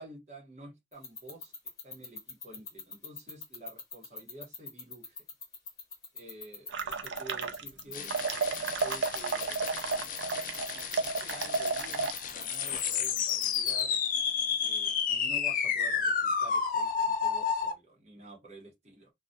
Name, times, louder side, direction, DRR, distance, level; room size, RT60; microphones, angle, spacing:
voice 1, 0.0-1.5 1.8-5.2 6.1-8.5 8.8-9.6 10.7-14.0 14.6-19.1, right 2 dB, 40° right, 0.9 m, -50 dB
sound 1, 0.9-13.8, left 5 dB, 20° left, 0.8 m, -41 dB
sound 2, 6.7-7.8 8.1-12.1, right 4 dB, 90° right, 0.4 m, -32 dB
sound 3, 7.9-17.7, left 6 dB, 50° left, 0.4 m, -31 dB
2.3 x 2.2 x 2.6 m
head